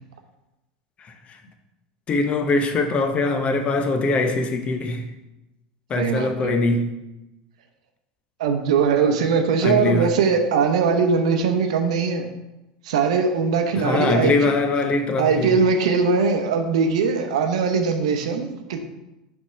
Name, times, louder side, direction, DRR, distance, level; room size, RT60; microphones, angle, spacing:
voice 1, 1.0-1.4 2.1-5.0 5.9-6.8 9.6-10.1 13.8-15.6, left 3 dB, 35° left, 7 dB, 0.8 m, -22 dB
voice 2, 6.0-6.5 8.4-12.3 12.8-14.3 15.2-18.8, right 5 dB, 75° right, 6 dB, 0.8 m, -21 dB
6.1 x 3.6 x 5.6 m, 0.98 s
hypercardioid pair, 90°, 4 cm